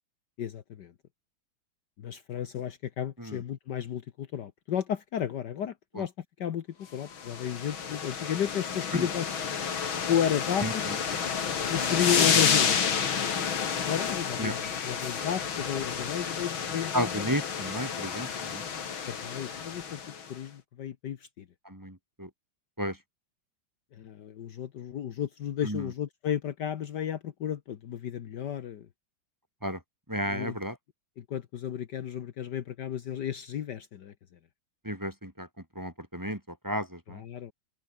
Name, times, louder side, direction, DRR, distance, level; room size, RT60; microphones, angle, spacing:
voice 1, 0.4-0.9 2.0-9.3 10.1-11.0 11.7-12.9 13.8-17.3 19.1-20.0 20.3-21.4 23.9-28.9 30.3-30.6 31.2-34.1 37.1-37.5, left 9 dB, 60° left, 1.6 m, -33 dB
sound 1, 7.1-20.3, left 7 dB, 80° left, 2.9 m, -30 dB
voice 2, 10.6-11.2 14.4-14.5 16.9-18.6 21.6-22.3 22.8-23.0 25.6-25.9 29.6-29.8 30.1-30.8 34.8-35.5 35.7-37.2, equal, 10° right, 3.0 m, -33 dB
omnidirectional pair, 2.2 m